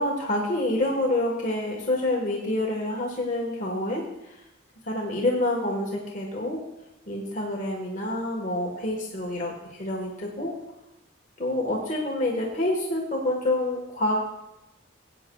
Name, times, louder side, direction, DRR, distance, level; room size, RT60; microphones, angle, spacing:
voice 1, 0.0-4.4 4.8-6.6 7.1-10.5 11.4-14.2, left 1 dB, 40° left, -2 dB, 1.3 m, -27 dB
18.0 x 8.8 x 2.3 m, 0.90 s
head